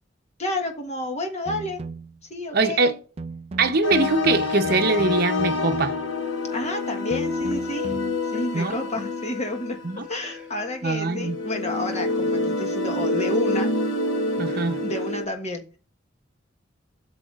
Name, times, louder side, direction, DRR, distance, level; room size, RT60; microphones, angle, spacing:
voice 1, 0.4-1.8 2.3-2.9 6.5-8.0 8.2-9.8 10.1-13.7 14.8-15.8, left 1 dB, 35° left, 1.4 m, -30 dB
sound 1, 1.5-2.2 3.2-6.2 7.1-8.2, right 3 dB, 30° right, 0.3 m, -36 dB
voice 2, 2.5-3.0 3.6-6.0 8.5-8.8 9.8-10.1 10.8-11.4 14.4-14.8, right 3 dB, 55° right, 0.8 m, -22 dB
sound 2, 3.8-15.2, left 2 dB, 85° left, 1.1 m, -27 dB
sound 3, 4.7-7.8 8.1-9.1 10.0-10.9, equal, 5° right, 2.3 m, -49 dB
11.0 x 7.0 x 2.5 m
head